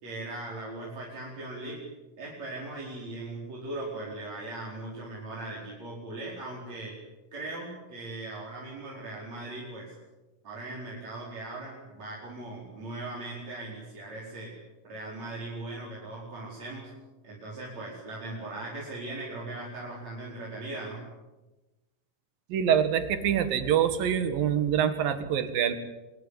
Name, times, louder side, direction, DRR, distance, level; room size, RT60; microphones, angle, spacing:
voice 1, 0.0-1.8 2.2-6.9 7.3-9.9 10.4-14.5 14.8-16.9 17.2-21.0, right 2 dB, 50° right, -5 dB, 6.1 m, -39 dB
voice 2, 22.5-25.7, right 9 dB, 80° right, 10 dB, 3.5 m, -25 dB
25.5 x 20.5 x 8.6 m, 1.1 s
omnidirectional pair, 4.0 m